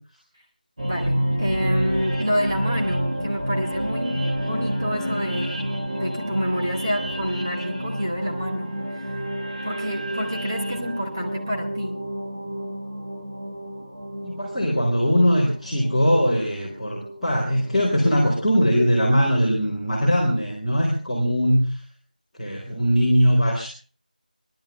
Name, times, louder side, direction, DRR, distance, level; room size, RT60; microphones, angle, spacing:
voice 1, 0.8-8.8 9.6-12.0, equal, 25° right, -1 dB, 2.0 m, -28 dB
sound 1, 0.8-17.9, equal, 50° right, 3.2 m, -29 dB
voice 2, 14.2-21.8 22.4-23.7, equal, ahead, -17 dB, 1.9 m, -21 dB
18.5 x 11.5 x 5.3 m, 0.40 s
figure-of-eight pair, 180°, 5 cm